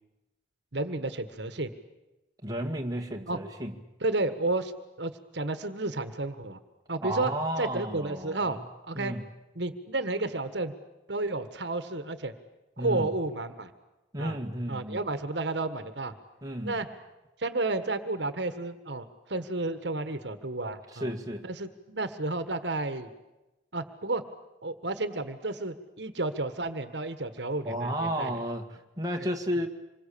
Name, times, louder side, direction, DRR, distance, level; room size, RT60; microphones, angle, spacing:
voice 1, 0.7-1.7 3.3-3.4 4.0-4.7 5.0-6.6 6.9-7.3 7.6-8.6 8.8-9.1 9.5-10.7 11.1-12.3 12.8-13.7 14.2-14.4 14.7-16.1 16.6-16.9 17.4-21.1 21.4-23.1 23.7-24.2 24.6-28.4, right 2 dB, 65° right, 11 dB, 1.5 m, -31 dB
voice 2, 2.4-3.8 7.0-8.6 8.9-9.3 12.8-13.1 14.1-15.0 16.4-16.7 20.9-21.5 27.6-29.7, equal, 20° right, 2 dB, 1.9 m, -32 dB
26.5 x 22.5 x 8.6 m, 1.0 s
head